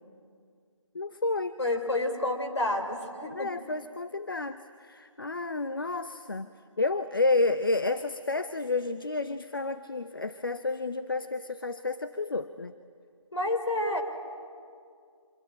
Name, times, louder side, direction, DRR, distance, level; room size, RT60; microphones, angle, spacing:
voice 1, 0.9-1.6 3.3-6.5 6.8-12.7, left 3 dB, 45° left, 11 dB, 0.7 m, -30 dB
voice 2, 1.6-3.5 13.3-14.0, left 2 dB, 60° left, 4 dB, 4.2 m, -29 dB
25.5 x 25.5 x 8.9 m, 2.3 s
figure-of-eight pair, 160°, 16 cm